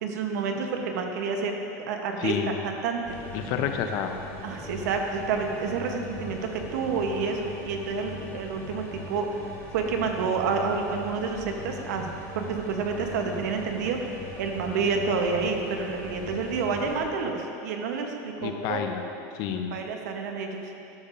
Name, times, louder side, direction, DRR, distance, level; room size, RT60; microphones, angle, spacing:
voice 1, 0.0-1.6 1.9-3.2 4.4-9.4 9.7-12.1 12.3-19.0 19.7-20.8, right 4 dB, 85° right, 3 dB, 1.0 m, -29 dB
voice 2, 2.2-2.5 3.3-4.1 18.4-19.0 19.3-19.7, left 9 dB, 50° left, 5 dB, 0.7 m, -29 dB
sound 1, 3.0-17.0, left 1 dB, 25° left, 2.0 m, -41 dB
12.0 x 7.3 x 2.6 m, 2.8 s
supercardioid pair, 140°, 9 cm